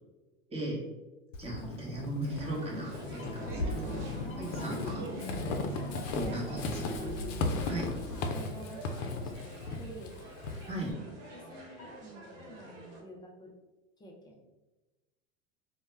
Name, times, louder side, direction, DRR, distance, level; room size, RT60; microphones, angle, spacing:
voice 1, 0.5-0.8 1.4-4.0 4.4-5.0 6.1-6.9 7.6-7.9 10.7-10.9, right 1 dB, 15° right, -3 dB, 0.8 m, -37 dB
Walk footsteps / Squeak, 1.3-10.9, left 3 dB, 80° left, 0.5 m, -37 dB
voice 2, 1.6-1.9 4.2-5.0 5.7-6.7 7.7-10.2 11.2-13.5 14.0-14.4, right 1 dB, 15° left, 0 dB, 0.3 m, -49 dB
sound 1, 2.2-13.0, right 1 dB, 65° right, 0.9 m, -46 dB
sound 2, 3.1-9.7 11.2-12.0, right 2 dB, 35° left, 0.7 m, -44 dB
2.1 x 2.1 x 3.2 m, 1.1 s
hypercardioid pair, 100°, 37 cm